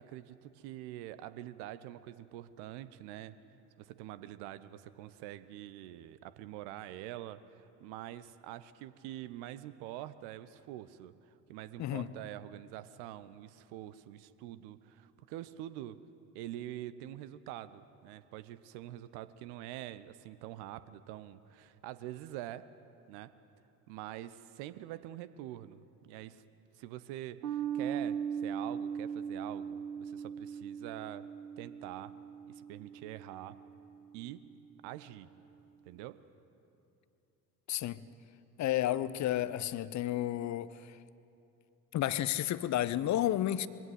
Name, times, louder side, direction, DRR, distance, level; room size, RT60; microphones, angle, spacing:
voice 1, 0.0-3.4 3.8-16.0 16.3-22.7 23.1-23.3 23.9-26.4 26.8-31.3 31.6-32.1 32.5-33.6 34.1-34.4 34.8-35.3 35.8-36.2, right 13 dB, 55° right, 1.0 m, -45 dB
sound 1, 27.4-34.2, right 8 dB, 70° right, 1.2 m, -39 dB
voice 2, 37.7-38.0 38.6-40.7 41.9-43.7, left 13 dB, 35° left, 0.8 m, -31 dB
22.5 x 16.5 x 8.1 m
figure-of-eight pair, 55°, 48 cm